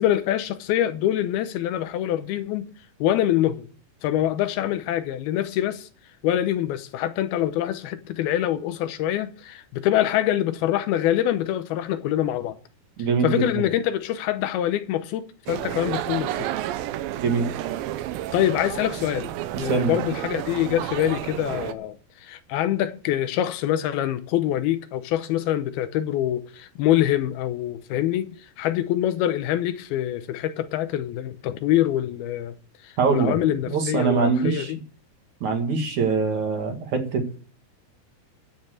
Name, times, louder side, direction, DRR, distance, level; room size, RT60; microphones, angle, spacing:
voice 1, 0.0-2.7 3.0-3.7 4.0-5.9 6.2-12.6 13.2-16.5 18.3-32.6 32.8-34.8, left 12 dB, 85° left, 2.7 m, -25 dB
voice 2, 13.0-13.6 17.2-17.5 19.5-20.0 33.0-33.4 33.7-34.7 35.4-37.4, right 5 dB, 55° right, 3.0 m, -23 dB
sound 1, 15.5-21.7, right 13 dB, 75° right, 2.3 m, -31 dB
13.5 x 7.5 x 7.6 m
omnidirectional pair, 4.4 m